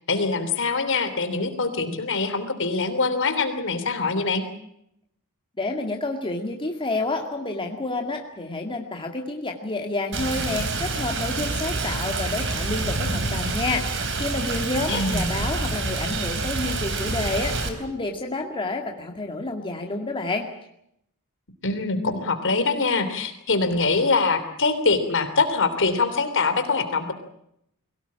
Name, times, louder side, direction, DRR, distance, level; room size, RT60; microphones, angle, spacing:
voice 1, 0.1-4.4 14.9-15.3 21.6-27.1, left 4 dB, 60° left, 8 dB, 3.2 m, -23 dB
voice 2, 5.6-20.5, left 2 dB, 25° left, 2 dB, 2.2 m, -29 dB
Rain, 10.1-17.7, right 3 dB, 60° right, 3.7 m, -27 dB
22.5 x 17.5 x 8.7 m, 0.76 s
head